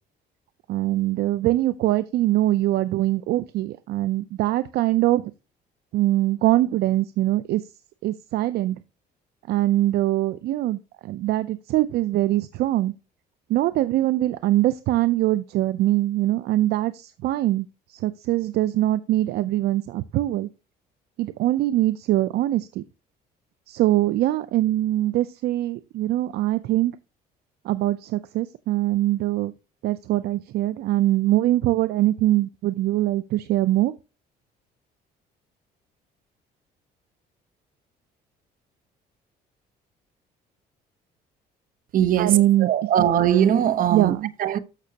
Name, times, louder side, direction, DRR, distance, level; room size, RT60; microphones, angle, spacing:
voice 1, 0.7-5.3 5.9-7.7 8.0-8.8 9.5-12.9 13.5-20.5 21.2-22.8 23.7-27.0 27.6-29.5 29.8-33.9 42.2-42.7 43.0-43.1 43.9-44.3, right 15 dB, 70° right, 0.5 m, -23 dB
voice 2, 41.9-44.6, right 10 dB, 55° right, 1.0 m, -21 dB
13.5 x 6.1 x 2.8 m
cardioid pair, 110°, 17 cm